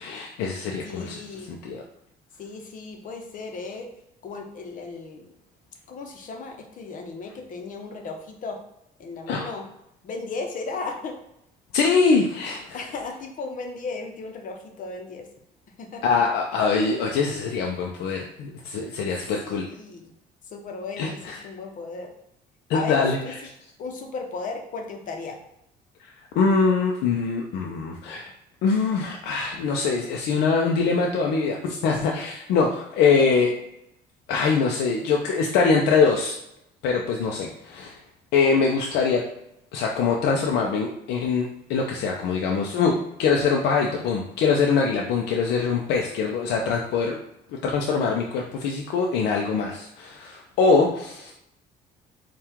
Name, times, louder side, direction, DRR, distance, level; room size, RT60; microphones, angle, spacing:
voice 1, 0.0-1.2 1.5-1.8 9.3-9.5 11.7-12.8 16.0-19.7 21.0-21.4 22.7-23.2 26.0-26.1 26.4-28.3 28.6-33.5 34.3-36.4 36.8-38.0 38.3-39.2 39.7-47.2 47.6-51.3, left 5 dB, 85° left, 1 dB, 0.5 m, -23 dB
voice 2, 0.8-1.5 2.4-3.9 4.2-5.3 5.9-8.6 9.0-9.6 10.0-11.2 12.7-15.3 15.8-16.2 19.4-20.1 20.5-22.1 22.7-23.3 23.8-25.4 33.2-33.3, left 4 dB, 50° left, 3 dB, 0.8 m, -35 dB
4.5 x 2.4 x 3.5 m, 0.81 s
cardioid pair, 110°, 17 cm